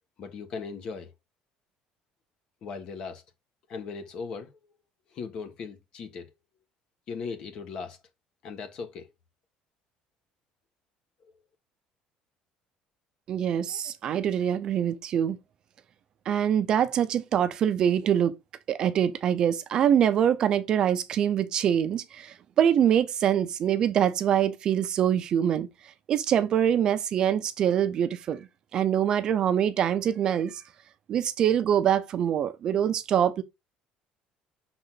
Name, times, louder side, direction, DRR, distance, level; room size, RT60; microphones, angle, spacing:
voice 1, 0.2-1.1 2.6-3.2 3.7-4.7 5.1-6.3 7.1-8.0 8.4-9.1, left 5 dB, 45° left, 1.3 m, -38 dB
voice 2, 13.3-15.4 16.3-18.3 18.7-25.7 26.1-28.5 28.7-30.6 31.1-33.4, right 9 dB, 40° right, 0.6 m, -24 dB
6.1 x 3.9 x 3.9 m
cardioid pair, 165°, 2 cm